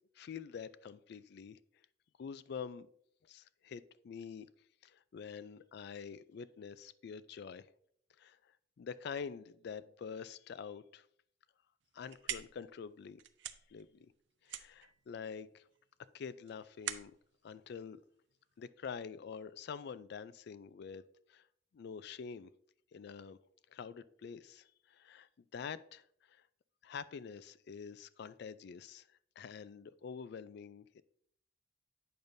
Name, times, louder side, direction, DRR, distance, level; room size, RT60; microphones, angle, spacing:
voice 1, 0.2-1.6 2.2-2.9 3.2-4.5 4.8-7.7 8.2-8.4 8.8-11.1 11.9-13.2 13.7-14.1 14.4-15.7 16.1-17.1 17.4-18.0 18.6-21.0 21.3-21.5 21.7-22.5 22.9-23.4 23.7-26.4 26.8-29.1 29.4-31.0, left 6 dB, 60° left, 15 dB, 0.3 m, -46 dB
sound 1, 11.8-18.7, right 10 dB, 65° right, 0.5 m, -46 dB
8.8 x 6.5 x 2.6 m, 0.66 s
head